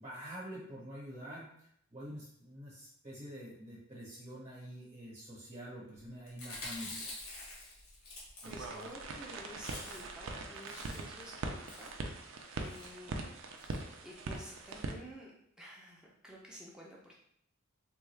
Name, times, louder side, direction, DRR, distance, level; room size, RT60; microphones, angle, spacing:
voice 1, 0.0-7.2, equal, 35° right, -6 dB, 0.9 m, -47 dB
Chewing mastication, 6.3-8.9 9.2-9.3 9.5-10.2 10.5-11.2 11.6-12.0 12.6-12.9 13.6-13.8 14.1-14.2 14.4-14.5, left 2 dB, 75° left, 1.2 m, -46 dB
voice 2, 8.0-13.4 13.8-15.3 15.6-17.1, equal, 5° right, -4 dB, 0.5 m, -52 dB
sound 1, 8.4-14.9, right 3 dB, 65° right, 0.4 m, -42 dB
3.5 x 2.3 x 3.2 m, 0.71 s
head